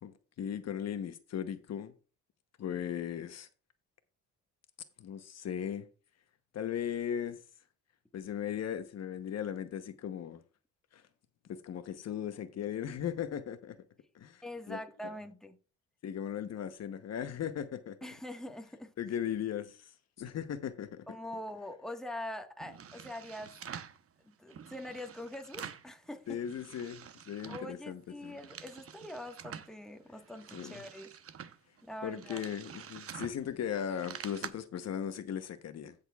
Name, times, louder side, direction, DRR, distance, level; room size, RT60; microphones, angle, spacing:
voice 1, 0.0-1.9 2.6-3.5 5.0-5.9 6.5-7.4 8.1-10.4 10.9-11.0 11.5-13.8 14.1-14.8 16.0-18.0 19.0-19.9 20.2-21.0 26.3-28.4 30.5-30.8 32.0-35.9, left 9 dB, 60° left, 0.9 m, -37 dB
voice 2, 14.4-15.6 18.0-18.9 21.1-23.6 24.2-26.4 27.5-31.1 31.8-32.4, left 1 dB, ahead, 1.4 m, -43 dB
sound 1, 22.6-24.0 24.5-25.9 26.3-27.8 28.1-29.7 30.2-34.5, right 8 dB, 50° right, 0.9 m, -47 dB
15.5 x 6.7 x 2.3 m
cardioid pair, 90°, 30 cm